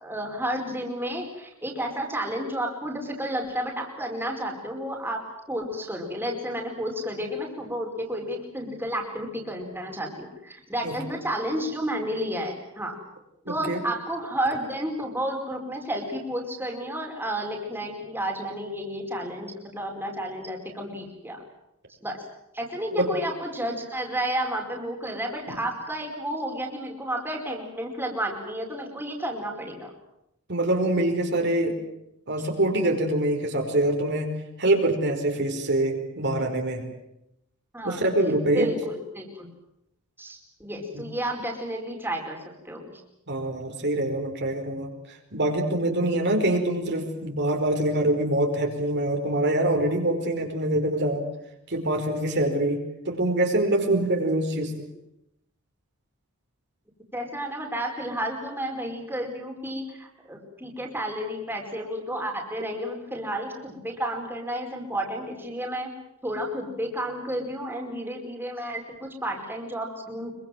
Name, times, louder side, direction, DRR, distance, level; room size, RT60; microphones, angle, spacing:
voice 1, 0.0-13.0 13.5-21.4 22.0-22.2 22.5-29.9 37.7-38.0 38.4-39.5 40.2-42.9 57.1-65.9 66.2-70.3, equal, 10° right, 1 dB, 4.9 m, -31 dB
voice 2, 13.4-13.8 22.9-23.1 25.5-25.6 30.5-31.8 32.3-34.3 34.6-36.9 37.8-38.7 43.3-51.3 51.7-54.9, right 1 dB, 55° right, 3 dB, 4.9 m, -25 dB
25.5 x 24.0 x 7.7 m, 0.83 s
head